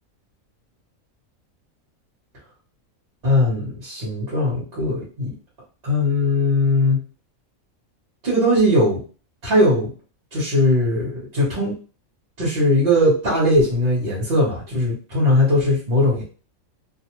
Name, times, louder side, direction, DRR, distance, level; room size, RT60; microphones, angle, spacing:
voice 1, 3.2-5.3 5.8-7.0 8.2-9.0 9.4-9.9 10.3-11.7 12.4-16.2, left 1 dB, 45° right, -7 dB, 1.1 m, -19 dB
2.6 x 2.2 x 2.9 m, 0.37 s
omnidirectional pair, 1.5 m